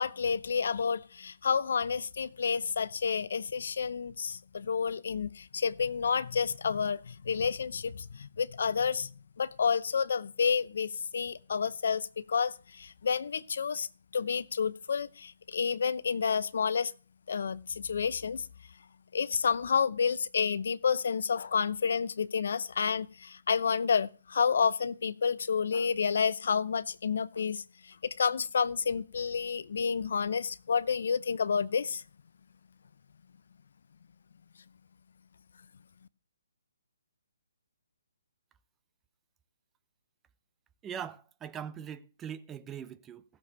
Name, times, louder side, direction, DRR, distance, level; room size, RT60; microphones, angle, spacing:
voice 1, 0.0-9.1 9.4-13.9 14.1-16.9 17.3-18.4 19.1-27.6 28.0-32.0, left 6 dB, 65° left, 0.7 m, -30 dB
voice 2, 40.8-43.2, right 8 dB, 15° right, 0.6 m, -41 dB
15.5 x 7.0 x 6.9 m
hypercardioid pair, 150°, 0 cm